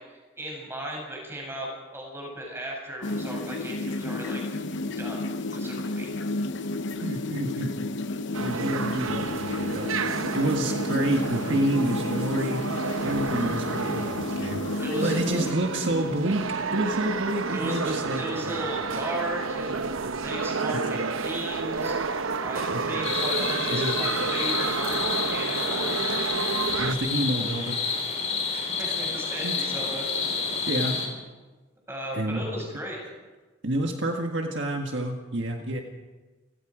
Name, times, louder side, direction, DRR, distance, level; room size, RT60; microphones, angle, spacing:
voice 1, 0.1-4.4 5.0-5.2 5.5-6.2 14.8-15.5 17.5-26.1 28.5-30.3 31.9-33.0, right 1 dB, 10° right, -1 dB, 7.6 m, -36 dB
sound 1, 3.0-15.5, left 2 dB, 60° left, 0.9 m, -31 dB
voice 2, 7.0-7.8 8.4-9.9 10.3-12.6 13.0-16.5 16.7-18.6 22.6-22.8 23.7-23.9 26.8-27.8 28.9-29.0 29.4-29.7 30.5-31.0 32.1-32.4 33.6-35.8, right 1 dB, 60° right, 2 dB, 1.7 m, -28 dB
sound 2, 8.3-26.9, right 4 dB, 85° right, 0.9 m, -30 dB
sound 3, 23.0-31.1, left 5 dB, 35° left, 4.7 m, -29 dB
30.0 x 17.0 x 5.1 m, 1.3 s
head